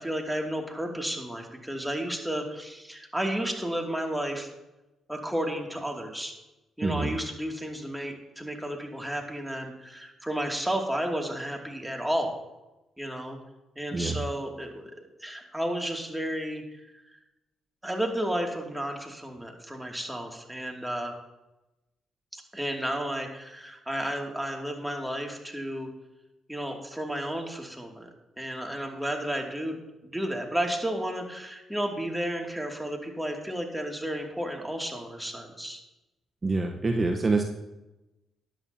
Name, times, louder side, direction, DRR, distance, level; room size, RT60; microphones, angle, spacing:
voice 1, 0.0-4.5 5.1-6.3 6.8-12.3 13.0-13.4 13.8-16.6 17.1-17.2 17.8-21.1 22.3-25.9 26.5-28.1 28.4-35.8, right 1 dB, 5° right, 1 dB, 2.5 m, -32 dB
voice 2, 6.8-7.2 13.9-14.2 36.4-37.4, right 3 dB, 35° right, 4 dB, 1.1 m, -26 dB
13.5 x 10.5 x 2.9 m, 0.99 s
hypercardioid pair, 50°, 0 cm